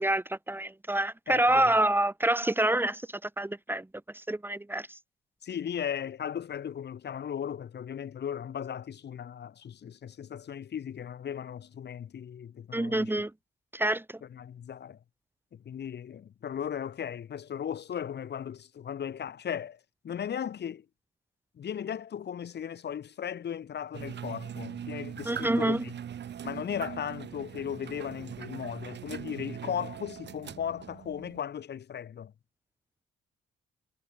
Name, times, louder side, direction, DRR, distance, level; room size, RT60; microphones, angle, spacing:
voice 1, 0.0-3.9 4.1-4.9 12.7-13.3 13.7-14.0 25.3-25.8, right 1 dB, 10° right, 2.7 m, -27 dB
voice 2, 1.3-1.8 5.4-13.1 14.3-15.0 15.5-19.8 20.0-20.9 21.6-25.9 26.4-32.3, left 8 dB, 60° left, 5.3 m, -37 dB
sound 1, 23.9-31.4, right 9 dB, 60° right, 7.9 m, -41 dB
cardioid pair, 90°, 20 cm